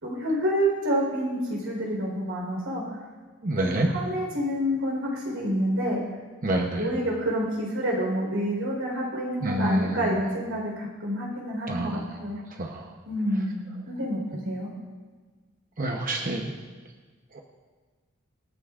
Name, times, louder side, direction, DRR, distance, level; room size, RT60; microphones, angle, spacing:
voice 1, 0.0-2.8 3.6-6.0 6.8-12.4 13.0-14.7, equal, 85° right, -2 dB, 4.1 m, -28 dB
voice 2, 3.4-3.9 6.4-6.9 9.4-10.2 11.7-12.2 12.6-12.9 15.8-16.6 17.3-17.4, right 1 dB, 45° right, 1 dB, 0.9 m, -28 dB
26.5 x 9.1 x 2.5 m, 1.4 s
head